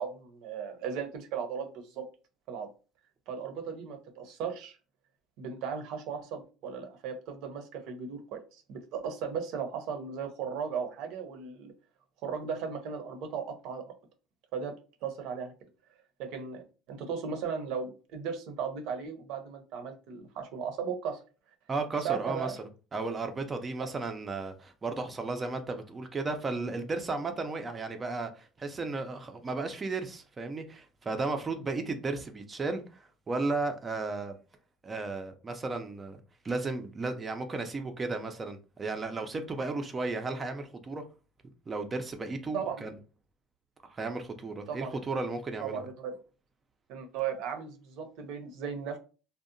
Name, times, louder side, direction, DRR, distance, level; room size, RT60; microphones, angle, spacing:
voice 1, 0.0-2.1 2.5-2.7 3.3-4.8 5.4-11.7 12.2-13.9 14.5-14.7 15.0-15.5 16.2-21.2 22.0-22.6 42.5-42.9 44.7-45.0 45.6-46.2 46.9-49.0, right 6 dB, 70° right, 0.6 m, -36 dB
voice 2, 21.7-34.3 34.8-36.2 36.4-41.0 41.7-42.9 43.8-45.8, right 3 dB, 25° right, 0.4 m, -34 dB
2.7 x 2.0 x 2.5 m
cardioid pair, 120°, 0 cm